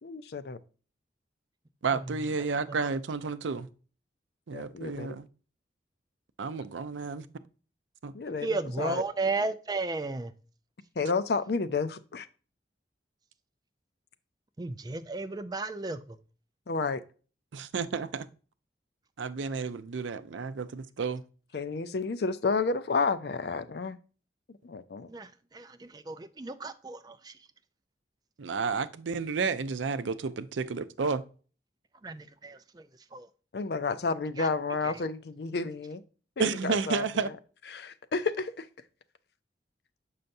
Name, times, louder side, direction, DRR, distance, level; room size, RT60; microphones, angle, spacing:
voice 1, 0.0-0.6 4.5-5.2 8.1-9.0 11.0-12.3 16.7-17.0 21.5-24.0 24.6-25.1 33.5-36.0 36.4-37.3 37.7-38.7, left 4 dB, 60° left, 0.5 m, -31 dB
voice 2, 1.8-3.7 4.5-5.3 6.4-7.3 8.0-8.1 17.5-18.3 19.2-21.2 28.4-31.2 36.4-37.3, right 5 dB, 85° right, 0.5 m, -31 dB
voice 3, 8.4-10.3 14.6-16.2 25.1-27.3 32.0-32.8 33.1-33.3 34.4-34.5, right 3 dB, 20° right, 0.4 m, -34 dB
6.5 x 5.6 x 2.6 m
head